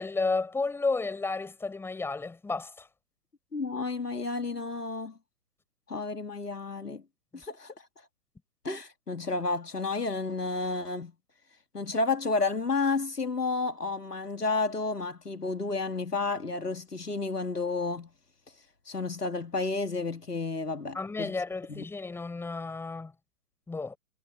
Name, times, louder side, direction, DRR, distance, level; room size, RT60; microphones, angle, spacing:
voice 1, 0.0-2.9 20.9-23.1 23.7-24.0, left 3 dB, 5° left, 4.7 m, -32 dB
voice 2, 3.5-5.2 5.9-7.0 7.3-7.7 8.6-11.1 11.7-18.1 18.9-21.4 21.7-21.8, left 3 dB, 85° left, 2.4 m, -31 dB
figure-of-eight pair, 130°, 46 cm